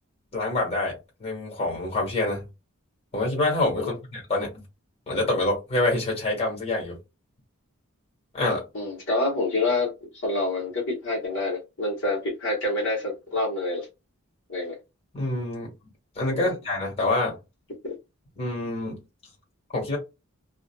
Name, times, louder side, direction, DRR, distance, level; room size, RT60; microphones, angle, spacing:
voice 1, 0.3-0.9 1.2-2.4 3.1-4.6 5.1-7.0 8.3-8.6 15.1-15.7 16.1-17.4 18.4-19.0 19.7-20.0, left 2 dB, 30° left, 1.4 m, -26 dB
voice 2, 8.7-13.9 14.5-14.8 16.3-16.6 17.8-18.0, left 2 dB, 60° left, 1.0 m, -27 dB
2.5 x 2.4 x 2.2 m
head